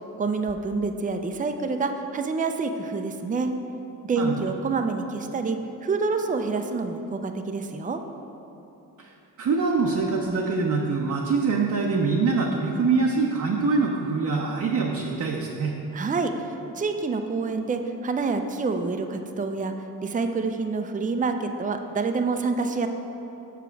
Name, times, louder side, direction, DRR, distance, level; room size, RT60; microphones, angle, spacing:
voice 1, 0.2-3.5 4.0-8.0 15.9-16.3 16.8-19.7 20.0-22.9, right 4 dB, 20° right, 6 dB, 0.5 m, -27 dB
voice 2, 9.4-15.7, right 4 dB, 50° right, -1 dB, 0.8 m, -24 dB
7.0 x 4.9 x 4.6 m, 3.0 s
supercardioid pair, 60°, 39 cm